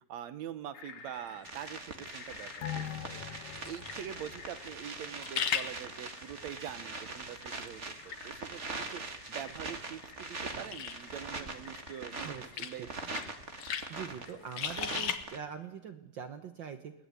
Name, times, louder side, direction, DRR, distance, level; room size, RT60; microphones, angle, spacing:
voice 1, 0.1-2.6 3.0-12.9, right 10 dB, 65° right, 13 dB, 2.0 m, -44 dB
sound 1, 0.7-15.2, left 7 dB, 55° left, 2.0 m, -42 dB
sound 2, 1.4-15.4, right 3 dB, 30° right, 1.5 m, -42 dB
sound 3, 2.6-5.5 5.9-6.0, left 10 dB, 70° left, 2.6 m, -43 dB
voice 2, 12.2-12.9 13.9-16.9, right 7 dB, 85° right, 9 dB, 1.0 m, -43 dB
21.0 x 18.5 x 9.7 m, 0.89 s
omnidirectional pair, 3.8 m